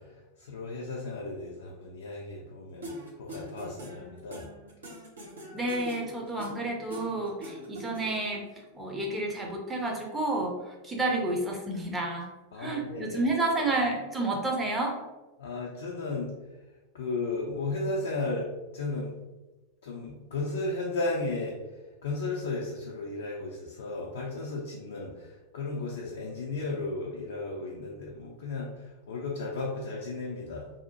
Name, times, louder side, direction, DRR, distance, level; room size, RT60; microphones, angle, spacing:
voice 1, 0.0-4.5 12.5-13.3 15.4-16.6 16.9-19.1 19.8-30.7, left 3 dB, 60° left, -3 dB, 0.4 m, -35 dB
sound 1, 2.8-8.4, right 1 dB, 70° right, 0.7 m, -43 dB
voice 2, 5.5-8.4 8.7-10.5 10.8-12.3 12.6-15.0, right 2 dB, 15° right, -1 dB, 0.6 m, -30 dB
2.7 x 2.0 x 2.7 m, 1.1 s
figure-of-eight pair, 90°, 0 cm